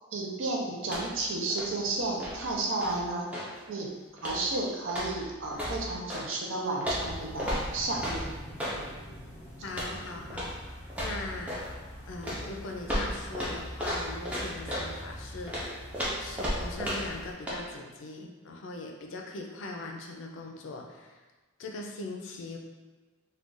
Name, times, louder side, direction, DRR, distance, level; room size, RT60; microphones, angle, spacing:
voice 1, 0.1-3.3 3.7-4.0 4.2-8.2, right 2 dB, 60° right, -1 dB, 0.5 m, -32 dB
sound 1, 0.8-1.3 1.5-3.6 4.2-4.5 4.9-6.3 6.8-8.8 9.7-10.0 10.3-10.6 10.9-11.7 12.2-14.9 15.5-17.2 17.5-17.6, equal, 5° right, 0.4 m, -34 dB
sound 2, 6.9-17.3, equal, 10° left, 0.9 m, -44 dB
voice 2, 9.6-10.5 11.0-11.8 12.1-15.8 16.2-21.2 21.6-22.6, left 2 dB, 60° left, 1 dB, 0.4 m, -40 dB
2.4 x 2.2 x 3.7 m, 1.3 s
head